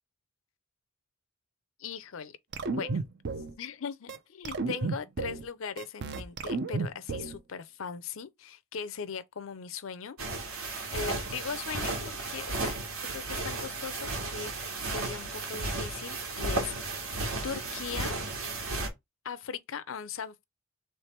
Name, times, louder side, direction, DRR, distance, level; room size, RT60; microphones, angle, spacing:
voice 1, 1.8-2.4 2.7-3.0 3.6-10.2 10.9-14.5 14.8-17.2 17.4-18.2 19.2-20.4, left 6 dB, 65° left, 0.5 m, -39 dB
sound 1, 2.5-3.5 4.1-4.2 4.4-5.5 5.8-7.4, right 3 dB, 55° right, 0.6 m, -32 dB
sound 2, 10.2-18.9, right 2 dB, 80° right, 1.4 m, -34 dB
3.4 x 3.3 x 4.4 m
head